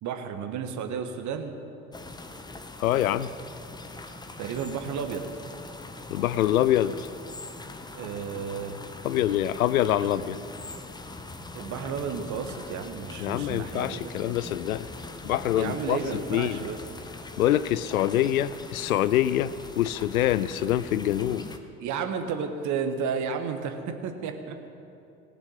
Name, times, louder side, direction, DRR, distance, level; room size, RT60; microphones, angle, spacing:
voice 1, 0.0-1.5 4.4-5.2 7.9-8.8 10.0-10.4 11.5-14.1 15.5-16.8 21.8-24.5, right 6 dB, 40° right, 7 dB, 1.3 m, -32 dB
sound 1, 1.9-21.6, left 2 dB, 10° left, 0.8 m, -42 dB
voice 2, 2.8-3.3 6.1-7.1 9.0-10.4 13.2-14.9 15.2-16.6 17.4-21.5, left 12 dB, 75° left, 16 dB, 0.5 m, -25 dB
19.0 x 6.8 x 6.5 m, 2.8 s
figure-of-eight pair, 65°, 44 cm